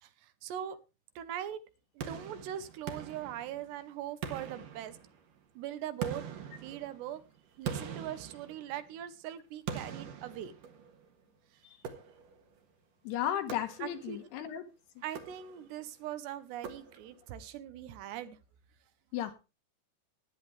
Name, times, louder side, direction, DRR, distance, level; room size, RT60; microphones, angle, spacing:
voice 1, 0.0-0.8 1.2-1.6 2.0-5.0 5.6-6.3 6.6-7.2 7.6-10.5 13.8-14.2 15.0-18.4, right 11 dB, 75° right, 3.0 m, -41 dB
sound 1, 2.0-3.8 4.2-5.4 6.0-9.0 9.7-11.1 11.8-12.5 13.5-14.2 15.0-15.8 16.6-17.3, right 7 dB, 60° right, 2.7 m, -43 dB
voice 2, 13.0-14.7 19.1-19.3, left 11 dB, 75° left, 3.1 m, -34 dB
16.5 x 11.0 x 3.3 m
omnidirectional pair, 5.1 m